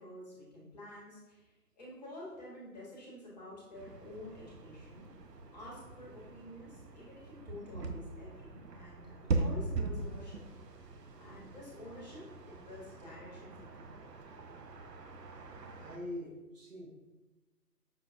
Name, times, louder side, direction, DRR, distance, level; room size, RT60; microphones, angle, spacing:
voice 1, 0.0-5.1 5.5-10.4 11.2-12.2 12.5-13.9, left 1 dB, 25° left, -5 dB, 0.9 m, -49 dB
sound 1, 3.7-16.0, right 3 dB, 85° right, 0.6 m, -41 dB
voice 2, 15.8-16.9, left 1 dB, 55° right, 1 dB, 0.8 m, -43 dB
5.5 x 2.3 x 2.4 m, 1.1 s
figure-of-eight pair, 140°, 48 cm